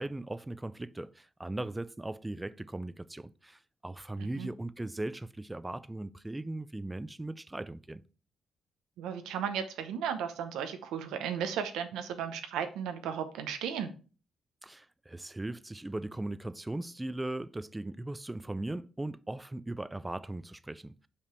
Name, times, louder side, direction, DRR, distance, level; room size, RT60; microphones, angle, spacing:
voice 1, 0.0-8.0 14.6-21.1, right 2 dB, 10° right, 0.4 m, -38 dB
voice 2, 4.2-4.5 9.0-13.9, right 8 dB, 90° right, 0.9 m, -35 dB
5.8 x 5.0 x 4.5 m
cardioid pair, 90°, 0 cm